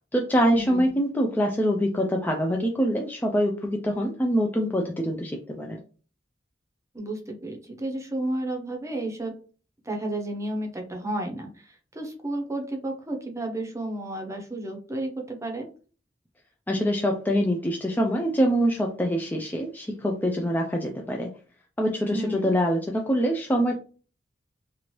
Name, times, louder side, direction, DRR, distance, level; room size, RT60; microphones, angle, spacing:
voice 1, 0.0-5.8 16.7-21.3 21.8-23.7, equal, 10° left, 1 dB, 0.3 m, -24 dB
voice 2, 0.5-0.9 6.9-9.3 9.8-15.7 22.1-22.5, right 1 dB, 15° right, 3 dB, 0.7 m, -32 dB
2.9 x 2.5 x 3.0 m, 0.38 s
head